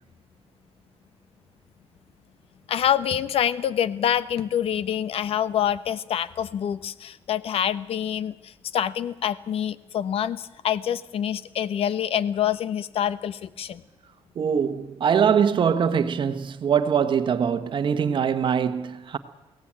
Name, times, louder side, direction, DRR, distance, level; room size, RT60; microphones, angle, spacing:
voice 1, 2.7-13.8, left 10 dB, 70° left, 1.0 m, -26 dB
voice 2, 14.3-19.2, right 7 dB, 50° right, 1.4 m, -23 dB
22.5 x 17.5 x 8.8 m
cardioid pair, 120°, 10 cm